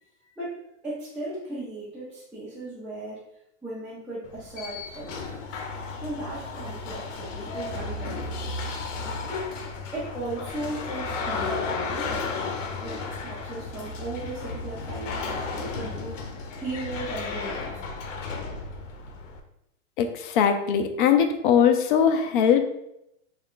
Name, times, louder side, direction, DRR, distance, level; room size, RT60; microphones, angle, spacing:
voice 1, 0.8-3.2 3.6-5.6 6.0-8.7 9.3-9.5 9.9-12.2 12.8-16.2 16.6-17.7, right 2 dB, ahead, -12 dB, 0.6 m, -36 dB
sound 1, 4.2-19.4, left 4 dB, 80° left, 0.7 m, -34 dB
voice 2, 20.0-22.6, left 8 dB, 45° left, 7 dB, 0.4 m, -21 dB
3.6 x 2.3 x 3.6 m, 0.82 s
supercardioid pair, 145°, 37 cm